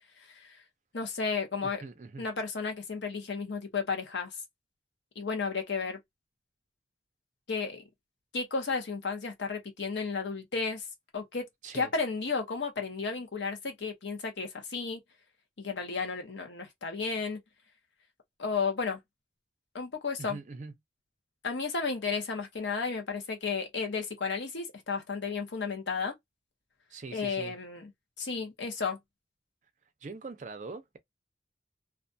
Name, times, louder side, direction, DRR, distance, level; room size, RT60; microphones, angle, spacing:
voice 1, 0.9-1.8 2.2-4.3 5.2-6.0 7.5-7.8 8.3-10.9 11.1-11.5 11.7-15.0 15.6-17.4 18.4-19.0 19.7-20.4 21.4-26.1 27.1-27.9 28.2-29.0, left 4 dB, 80° left, 0.8 m, -33 dB
voice 2, 1.6-2.3 11.6-11.9 20.2-20.7 26.9-27.5 30.0-31.0, right 3 dB, 40° right, 0.4 m, -42 dB
2.4 x 2.2 x 2.6 m
head